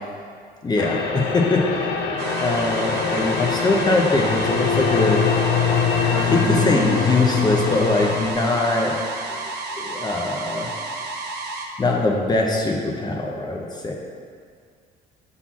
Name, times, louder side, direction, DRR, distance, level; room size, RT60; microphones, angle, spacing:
voice 1, 0.6-1.6 2.4-5.2 6.0-9.0 9.3-9.4 9.8-10.7 11.8-13.9, left 2 dB, 25° left, 0 dB, 0.8 m, -22 dB
sound 1, 0.8-8.3, left 6 dB, 80° left, 0.6 m, -23 dB
sound 2, 2.2-11.7, right 3 dB, 75° right, 0.8 m, -31 dB
voice 2, 6.1-7.0, equal, 20° right, 0 dB, 0.8 m, -28 dB
5.7 x 4.1 x 6.0 m, 2.1 s
cardioid pair, 110°, 17 cm